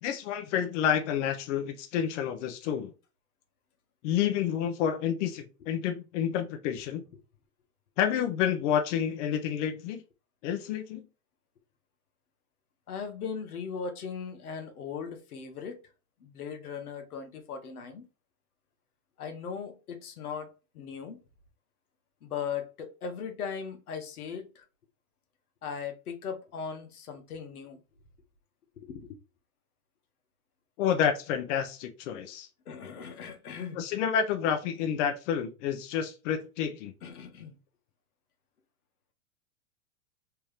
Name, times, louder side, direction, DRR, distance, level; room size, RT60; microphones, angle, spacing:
voice 1, 0.0-2.9 4.0-7.0 8.0-10.0 10.4-11.0 30.8-32.5 33.7-36.9, left 8 dB, 55° left, 0.8 m, -29 dB
voice 2, 12.9-15.8 16.2-18.1 19.2-21.2 22.2-24.6 25.6-27.8 28.8-29.2 32.7-33.8 37.0-37.6, left 6 dB, 90° left, 1.1 m, -38 dB
3.4 x 2.9 x 3.2 m
hypercardioid pair, 125°, 43 cm